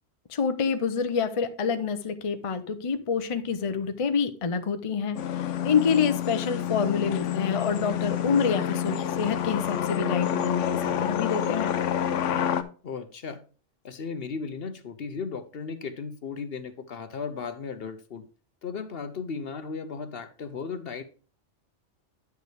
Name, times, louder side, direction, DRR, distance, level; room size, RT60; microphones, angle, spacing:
voice 1, 0.3-11.7, left 6 dB, 35° left, 0.6 m, -27 dB
sound 1, 5.2-12.6, left 9 dB, 80° left, 1.0 m, -28 dB
voice 2, 12.8-13.4 13.8-18.2 18.6-21.0, left 5 dB, 55° left, 0.9 m, -36 dB
9.5 x 6.5 x 3.3 m
omnidirectional pair, 1.3 m